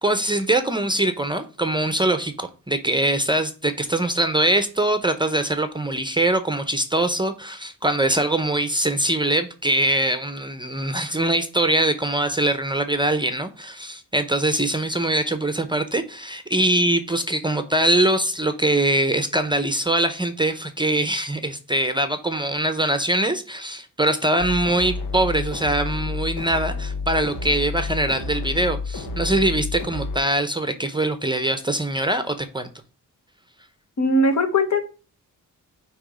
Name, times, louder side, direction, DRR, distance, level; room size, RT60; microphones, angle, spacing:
voice 1, 0.0-32.7, right 1 dB, 15° right, 0.7 m, -23 dB
sound 1, 24.4-30.2, left 4 dB, 90° left, 1.2 m, -30 dB
voice 2, 34.0-34.8, left 1 dB, 55° left, 1.3 m, -19 dB
8.8 x 3.1 x 4.9 m
cardioid pair, 90°, 34 cm